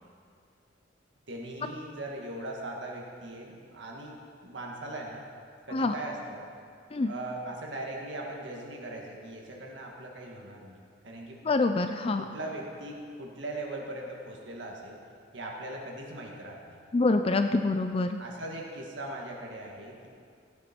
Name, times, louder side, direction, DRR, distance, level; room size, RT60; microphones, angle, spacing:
voice 1, 1.3-4.1 4.4-5.3 5.7-6.5 7.0-10.8 11.0-11.4 12.2-15.0 15.3-16.8 18.2-20.1, right 1 dB, 70° right, -1 dB, 1.8 m, -39 dB
voice 2, 11.4-12.2 16.9-18.2, left 3 dB, 30° left, 7 dB, 0.4 m, -26 dB
15.5 x 9.0 x 4.5 m, 2.2 s
head